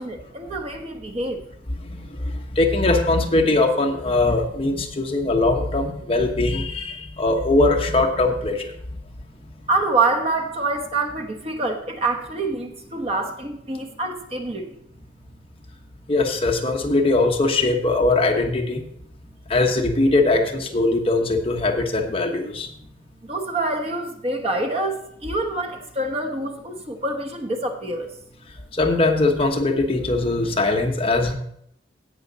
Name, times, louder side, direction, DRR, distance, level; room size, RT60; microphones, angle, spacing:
voice 1, 0.0-1.4 9.7-14.7 23.2-28.1, right 2 dB, 35° right, 5 dB, 1.1 m, -26 dB
voice 2, 2.5-8.7 16.1-18.8 19.5-22.7 28.7-31.4, left 2 dB, 30° left, 2 dB, 1.1 m, -21 dB
16.5 x 5.7 x 4.1 m, 0.72 s
head